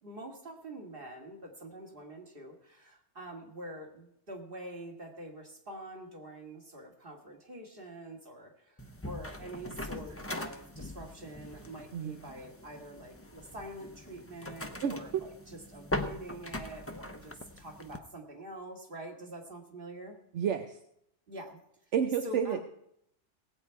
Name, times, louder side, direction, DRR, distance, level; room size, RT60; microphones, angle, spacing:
voice 1, 0.0-20.2 21.3-21.6 22.2-22.6, right 1 dB, 50° right, 1 dB, 2.3 m, -45 dB
sound 1, 8.8-18.0, left 1 dB, 15° left, 0.6 m, -41 dB
voice 2, 14.8-15.2 20.3-20.8 21.9-22.6, right 8 dB, 75° right, 7 dB, 1.0 m, -30 dB
18.5 x 8.4 x 4.6 m, 0.76 s
omnidirectional pair, 1.2 m